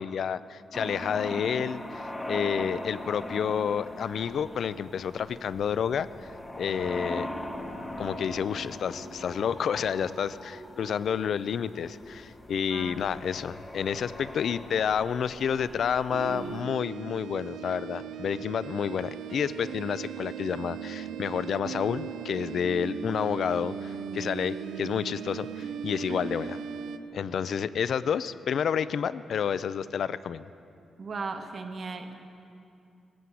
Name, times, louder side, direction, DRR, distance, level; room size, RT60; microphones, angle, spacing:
voice 1, 0.0-6.1 6.6-7.3 8.0-26.6 27.1-30.4, left 7 dB, 55° left, 16 dB, 0.4 m, -30 dB
sound 1, 0.7-16.6, left 1 dB, 10° left, 1.0 m, -40 dB
voice 2, 12.7-13.1 26.1-26.5 31.0-32.1, right 4 dB, 40° right, 6 dB, 1.1 m, -37 dB
sound 2, 16.1-27.0, right 8 dB, 90° right, 0.6 m, -38 dB
18.5 x 7.8 x 8.3 m, 2.6 s
wide cardioid pair, 145°, 0 cm